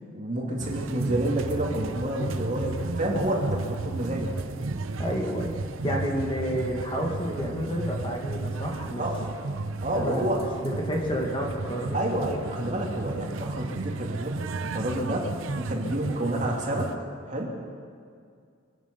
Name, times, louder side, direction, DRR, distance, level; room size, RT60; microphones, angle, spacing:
voice 1, 0.1-4.3 9.0-9.3 9.8-10.4 11.9-16.9 17.3-17.5, right 1 dB, 40° right, -2 dB, 2.6 m, -29 dB
sound 1, 0.6-17.0, right 3 dB, 90° right, 0.7 m, -33 dB
voice 2, 5.0-5.5 5.8-9.0 9.9-11.9, equal, 25° left, -1 dB, 2.0 m, -30 dB
24.5 x 11.0 x 5.3 m, 2.2 s
head